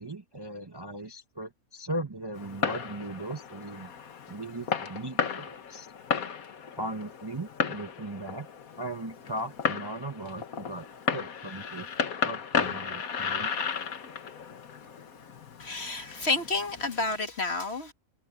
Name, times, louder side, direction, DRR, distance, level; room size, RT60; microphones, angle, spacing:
voice 1, 0.0-3.9 4.3-5.9 6.8-8.5 8.8-10.9 11.1-11.9 12.2-13.5, right 1 dB, 20° right, 0.9 m, -38 dB
Fireworks, 2.3-17.2, left 6 dB, 90° left, 1.8 m, -34 dB
voice 2, 15.6-17.9, left 3 dB, 50° left, 2.5 m, -30 dB
omnidirectional pair, 1.5 m